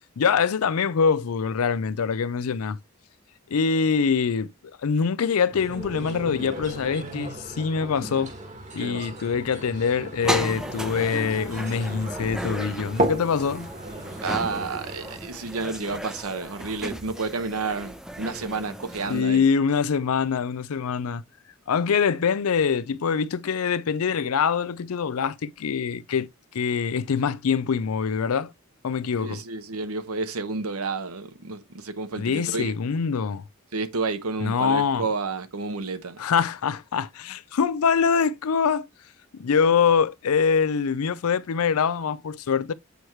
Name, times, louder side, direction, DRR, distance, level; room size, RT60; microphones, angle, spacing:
voice 1, 0.2-2.8 3.5-4.5 4.8-8.3 8.7-13.7 19.1-21.2 21.7-26.3 26.5-28.5 28.8-29.4 32.2-33.4 34.4-35.1 36.2-38.9 39.3-42.7, left 6 dB, 90° left, 0.5 m, -24 dB
sound 1, 5.5-15.2, right 1 dB, 35° right, 1.3 m, -35 dB
voice 2, 8.8-9.1 14.2-19.5 29.2-32.7 33.7-36.2, right 3 dB, 90° right, 1.0 m, -30 dB
sound 2, 10.2-19.2, equal, 5° right, 0.6 m, -35 dB
7.9 x 4.6 x 3.2 m
head